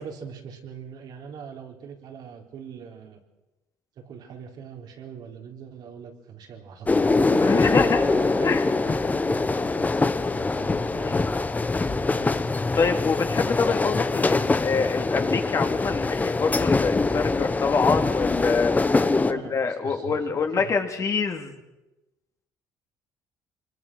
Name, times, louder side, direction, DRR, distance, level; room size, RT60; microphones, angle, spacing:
voice 1, 0.0-3.2 4.0-11.5 11.8-12.4 19.0-21.1, right 6 dB, 65° right, 2 dB, 3.9 m, -41 dB
sound 1, 6.9-19.3, left 3 dB, 20° left, 1.1 m, -23 dB
voice 2, 7.4-8.0 8.4-8.6 11.0-11.2 12.7-18.7 19.2-21.6, left 5 dB, 45° left, 5 dB, 2.8 m, -25 dB
24.5 x 21.5 x 6.3 m, 1.0 s
supercardioid pair, 80°, 8 cm